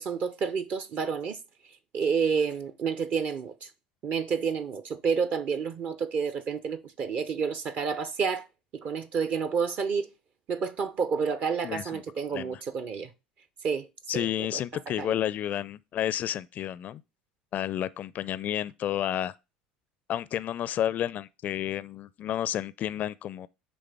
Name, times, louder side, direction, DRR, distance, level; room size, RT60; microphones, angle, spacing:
voice 1, 0.0-1.4 1.9-3.7 4.0-8.5 8.7-10.1 10.5-13.1 13.6-13.9 14.1-14.3 14.5-14.6 14.9-15.2, right 6 dB, 45° right, 0.7 m, -29 dB
voice 2, 11.6-12.0 12.3-12.6 14.1-17.0 17.5-19.3 20.1-23.5, left 11 dB, 40° left, 0.4 m, -31 dB
9.4 x 3.4 x 3.4 m
hypercardioid pair, 70°, 4 cm